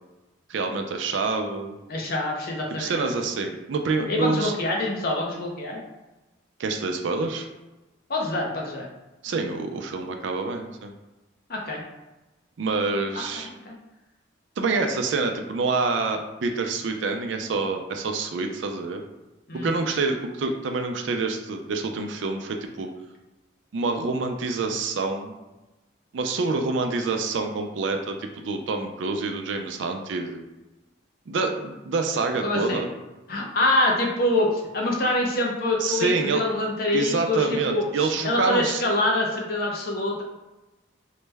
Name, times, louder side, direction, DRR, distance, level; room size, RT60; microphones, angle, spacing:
voice 1, 0.5-1.8 2.8-4.5 6.6-7.5 9.2-10.9 12.6-13.5 14.6-19.0 19.5-22.9 23.7-25.3 26.1-30.4 31.3-32.9 35.8-36.4 36.9-38.8, right 3 dB, 70° right, 5 dB, 0.4 m, -27 dB
voice 2, 1.9-3.0 4.1-5.8 8.1-8.9 11.5-11.8 13.3-13.8 19.5-19.7 32.4-32.8 33.3-40.2, left 1 dB, 50° left, -1 dB, 0.6 m, -25 dB
3.1 x 2.1 x 3.3 m, 1.1 s
head